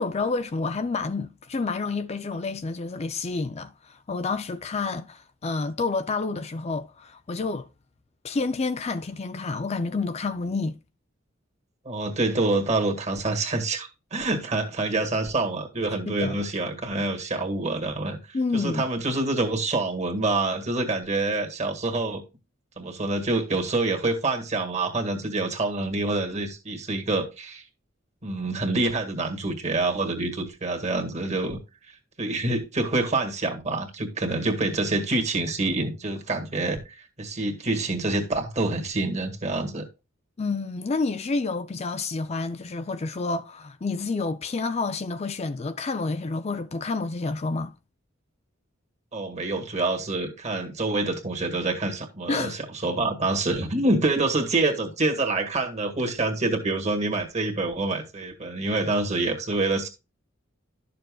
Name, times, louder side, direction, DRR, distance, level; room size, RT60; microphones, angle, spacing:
voice 1, 0.0-7.7 8.2-10.8 16.1-16.4 18.3-18.8 40.4-47.7 52.3-52.6, left 3 dB, 30° left, 0.5 m, -29 dB
voice 2, 11.8-22.2 22.8-27.6 28.2-31.6 31.9-39.9 49.1-59.9, right 2 dB, 35° right, 1.7 m, -26 dB
12.0 x 6.8 x 2.3 m
head